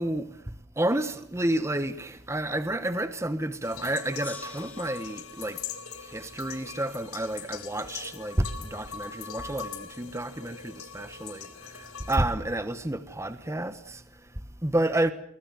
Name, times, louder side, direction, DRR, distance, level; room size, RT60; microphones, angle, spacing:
voice 1, 0.0-5.6 5.9-15.1, right 1 dB, 15° right, 1.2 m, -30 dB
sound 1, 3.6-12.2, left 7 dB, 85° left, 4.1 m, -41 dB
Gong, 4.2-7.3, left 2 dB, 10° left, 3.4 m, -49 dB
23.5 x 21.0 x 8.1 m
head